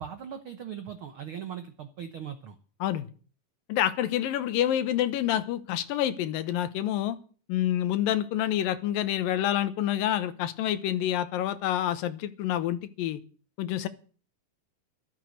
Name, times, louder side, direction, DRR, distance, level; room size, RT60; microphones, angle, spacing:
voice 1, 0.0-2.6, right 8 dB, 90° right, 9 dB, 1.1 m, -39 dB
voice 2, 3.7-7.2 7.5-13.2 13.6-13.9, left 11 dB, 85° left, 12 dB, 2.8 m, -28 dB
13.0 x 12.5 x 6.4 m, 0.40 s
omnidirectional pair, 3.9 m